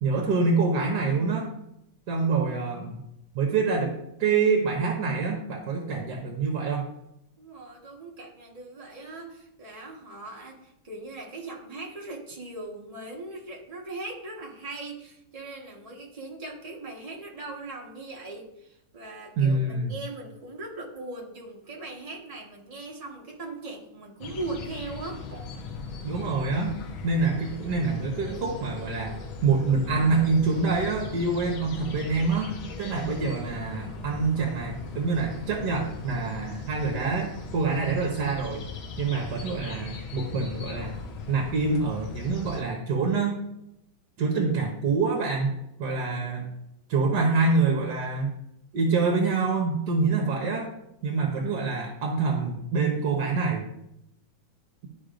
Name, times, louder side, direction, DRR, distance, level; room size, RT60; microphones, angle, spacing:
voice 1, 0.0-1.5 2.1-3.0 3.3-6.9 19.4-20.0 26.0-38.6 39.0-41.0 41.3-43.4 44.2-46.5 46.9-48.3 48.7-50.7 51.0-53.7, right 4 dB, 60° right, 0 dB, 1.5 m, -26 dB
voice 2, 7.4-25.2, right 2 dB, 20° right, -2 dB, 1.1 m, -39 dB
sound 1, 24.2-42.6, left 4 dB, 80° left, 1.7 m, -39 dB
11.5 x 4.9 x 2.5 m, 0.81 s
omnidirectional pair, 2.2 m